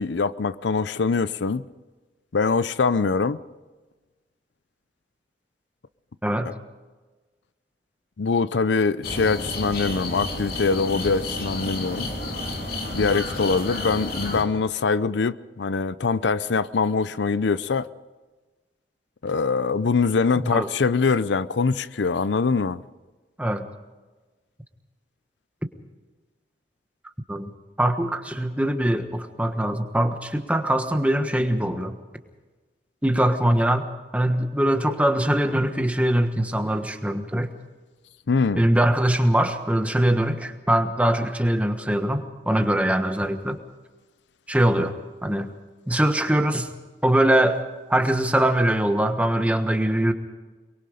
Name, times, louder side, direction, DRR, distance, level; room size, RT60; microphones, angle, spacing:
voice 1, 0.0-1.6 2.3-3.4 6.5-6.6 8.2-12.1 12.9-17.9 19.2-22.8 38.3-38.7, left 4 dB, 80° left, 0.6 m, -23 dB
sound 1, 9.0-14.4, left 2 dB, 55° left, 3.1 m, -31 dB
voice 2, 20.4-20.7 23.4-23.7 27.3-27.5 27.8-32.0 33.0-33.8 34.1-37.5 38.6-43.6 44.5-44.9 45.2-45.5 45.9-46.7 47.0-47.6 47.9-50.1, right 1 dB, 10° right, 1.3 m, -22 dB
24.0 x 23.0 x 5.1 m
head